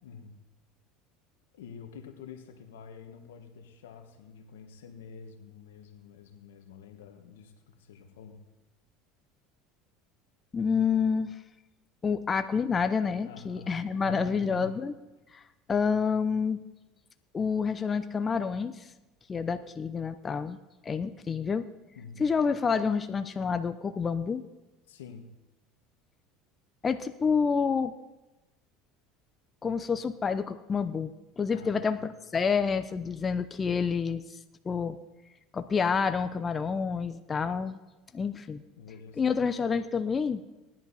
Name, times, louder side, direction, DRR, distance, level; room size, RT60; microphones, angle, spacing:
voice 1, 0.0-0.4 1.5-8.4 13.2-14.8 21.9-22.3 24.9-25.3 31.5-31.9 38.8-39.4, left 5 dB, 90° left, 6 dB, 1.4 m, -47 dB
voice 2, 10.5-11.3 12.0-14.9 15.3-15.4 15.7-16.6 17.3-18.9 19.3-20.6 20.8-21.7 22.2-24.4 26.8-27.9 29.6-34.2 34.6-35.0 35.5-37.8 38.1-38.6 39.2-40.4, left 5 dB, 25° left, 10 dB, 0.7 m, -28 dB
18.5 x 10.5 x 4.2 m, 1.1 s
supercardioid pair, 100°, 0 cm